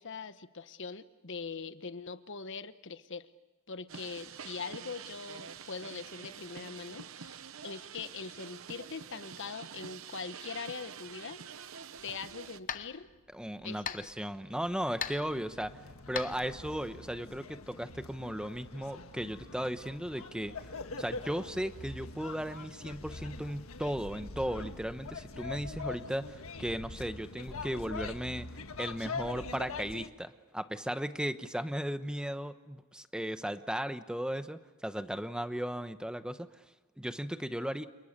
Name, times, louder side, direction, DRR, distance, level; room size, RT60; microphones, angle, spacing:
voice 1, 0.0-3.3 3.7-11.4 12.0-13.1 13.6-13.9, left 5 dB, 60° left, 12 dB, 1.1 m, -42 dB
sound 1, 3.9-12.6, right 7 dB, 70° right, 0.9 m, -47 dB
sound 2, 11.9-17.2, left 8 dB, 40° left, 0.9 m, -43 dB
voice 2, 13.3-15.8 16.1-20.5 21.0-28.5 28.8-36.6 37.0-37.9, equal, 5° right, 10 dB, 1.0 m, -36 dB
sound 3, 14.6-30.1, left 3 dB, 80° left, 1.5 m, -44 dB
30.0 x 28.0 x 6.7 m, 1.2 s
head